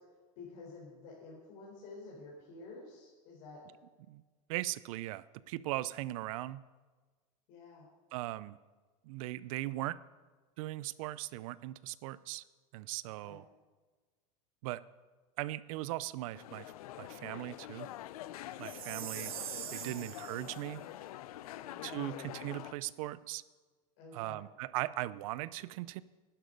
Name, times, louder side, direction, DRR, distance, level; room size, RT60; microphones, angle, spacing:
voice 1, 0.4-3.6 7.5-7.9 13.2-13.4 19.8-20.1 21.6-22.4 24.0-24.4, left 3 dB, 60° left, -4 dB, 4.2 m, -51 dB
voice 2, 4.5-6.6 8.1-8.6 9.0-10.0 10.6-12.4 12.7-13.5 14.6-14.8 15.4-16.7 17.0-17.9 18.6-19.3 19.7-20.8 21.8-23.4 24.1-26.0, right 17 dB, 70° right, 18 dB, 0.5 m, -39 dB
sound 1, 16.3-22.7, left 13 dB, 85° left, 0.5 m, -45 dB
Chime, 18.6-20.6, right 13 dB, 90° right, 0.9 m, -43 dB
11.5 x 11.5 x 5.3 m, 1.3 s
supercardioid pair, 130°, 18 cm